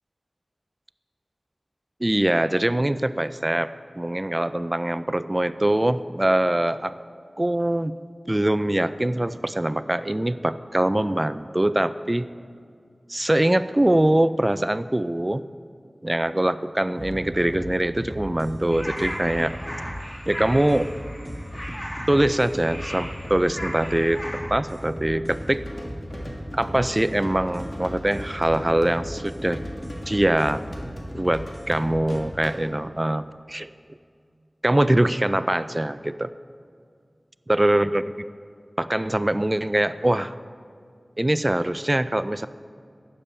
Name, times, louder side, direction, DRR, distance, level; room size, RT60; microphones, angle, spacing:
voice 1, 2.0-3.7 4.0-6.9 7.4-7.9 8.3-12.3 13.1-15.4 16.0-19.6 20.3-20.9 22.1-25.6 26.5-29.6 30.1-30.6 31.1-33.7 34.6-36.3 37.5-38.3 38.8-40.3 41.2-42.5, right 1 dB, 25° right, 14 dB, 0.3 m, -23 dB
sound 1, 17.0-32.2, equal, 5° left, 1.7 m, -36 dB
FL Keys Frogs, 18.7-24.4, equal, 25° left, 2.1 m, -36 dB
sound 2, 25.2-32.8, equal, 55° left, 1.7 m, -41 dB
12.0 x 8.5 x 4.4 m, 2.2 s
wide cardioid pair, 55°, 0 cm